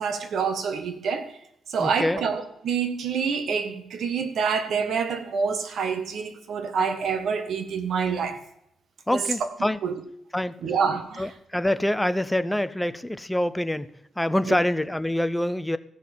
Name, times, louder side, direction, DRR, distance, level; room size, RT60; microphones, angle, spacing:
voice 1, 0.0-1.4 1.7-8.4 9.1-9.3 9.8-10.0 10.6-11.3 14.5-14.6, right 6 dB, 70° right, 8 dB, 1.6 m, -27 dB
voice 2, 1.8-2.2 9.1-9.8 10.3-10.5 11.2-15.8, left 1 dB, 5° left, 13 dB, 0.6 m, -25 dB
15.0 x 6.4 x 7.3 m, 0.79 s
cardioid pair, 125°, 0 cm